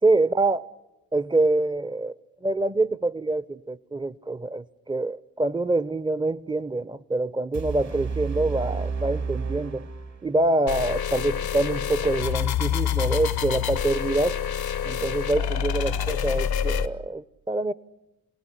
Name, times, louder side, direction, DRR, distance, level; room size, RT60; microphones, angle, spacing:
voice 1, 0.0-0.6 1.1-2.1 2.4-9.9 10.2-14.4 14.8-17.7, right 2 dB, 10° right, 0.8 m, -25 dB
sound 1, 7.5-10.5, right 5 dB, 45° right, 1.9 m, -31 dB
sound 2, 10.7-16.9, left 9 dB, 75° left, 1.1 m, -27 dB
27.5 x 18.5 x 9.9 m
supercardioid pair, 50°, 37 cm